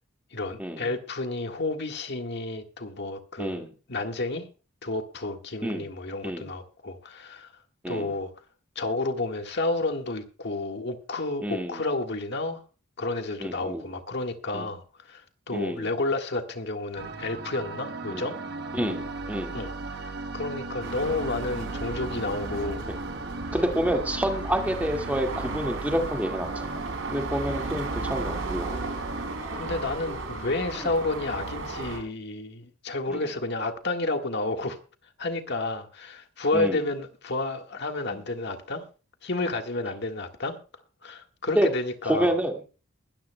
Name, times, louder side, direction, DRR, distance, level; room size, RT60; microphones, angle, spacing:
voice 1, 0.3-3.6 3.9-4.5 4.8-7.5 7.9-8.3 8.8-12.6 13.0-18.4 19.5-22.9 28.7-29.0 29.5-34.8 35.2-38.9 39.2-40.6 41.0-42.4, left 2 dB, 55° left, 1.6 m, -31 dB
voice 2, 11.4-11.8 13.4-13.8 14.5-14.7 15.5-15.9 18.1-18.2 18.7-19.5 23.5-26.8 27.1-29.0 33.1-33.2 36.5-36.8 38.1-38.2 41.6-41.7 42.1-42.5, equal, 5° right, 2.0 m, -28 dB
sound 1, 17.0-29.4, right 3 dB, 50° right, 1.0 m, -36 dB
sound 2, 20.8-32.0, right 2 dB, 65° right, 3.9 m, -36 dB
21.0 x 13.0 x 2.2 m
head